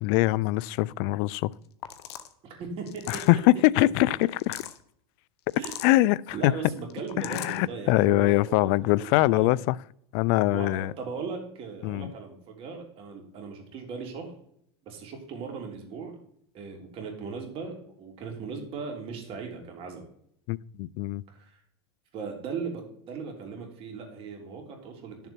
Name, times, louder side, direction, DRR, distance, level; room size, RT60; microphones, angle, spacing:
voice 1, 0.0-1.5 3.1-4.6 5.8-6.5 7.2-9.8 10.1-10.9 11.8-12.1 20.5-21.2, left 18 dB, 55° left, 0.4 m, -23 dB
sound 1, 1.5-1.6 1.8-2.3 2.9-3.4 4.2-4.8 5.5-6.0 6.9-7.6, left 11 dB, 75° left, 1.0 m, -40 dB
voice 2, 2.4-3.2 5.6-5.7 6.3-8.7 9.3-9.5 10.5-14.3 14.8-16.2 16.5-20.0 21.3-21.6 22.1-25.3, right 5 dB, 40° right, 3.2 m, -38 dB
11.0 x 6.8 x 4.4 m
hypercardioid pair, 110°, 14 cm